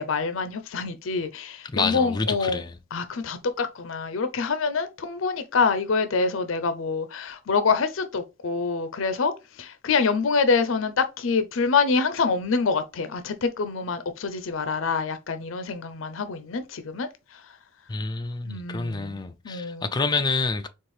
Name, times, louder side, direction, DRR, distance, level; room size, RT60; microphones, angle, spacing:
voice 1, 0.0-2.6 2.9-17.4 18.5-19.2 19.4-19.9, left 4 dB, 75° left, 0.5 m, -26 dB
voice 2, 1.6-2.8 17.9-20.7, left 4 dB, 20° left, 0.4 m, -28 dB
4.4 x 3.7 x 3.2 m
head